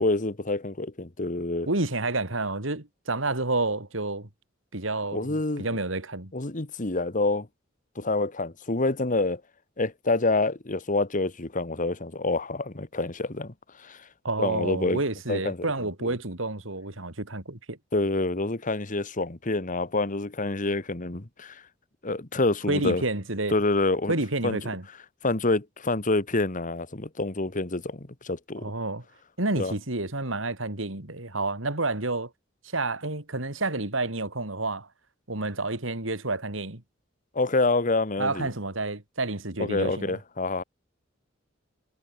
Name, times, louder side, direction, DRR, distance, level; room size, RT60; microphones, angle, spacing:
voice 1, 0.0-1.7 5.1-5.7 6.3-7.5 8.0-9.4 9.8-14.1 14.4-15.0 15.3-15.7 16.0-16.2 17.9-21.6 22.0-23.0 23.5-24.1 24.4-24.6 25.2-28.7 29.6-29.7 37.3-38.5 39.6-40.6, left 2 dB, 40° left, 1.7 m, -27 dB
voice 2, 1.7-4.3 4.7-6.3 14.2-17.8 22.7-23.6 24.1-24.8 28.6-29.0 29.4-32.3 32.7-34.9 35.3-36.8 38.2-40.2, right 2 dB, 75° right, 3.6 m, -29 dB
head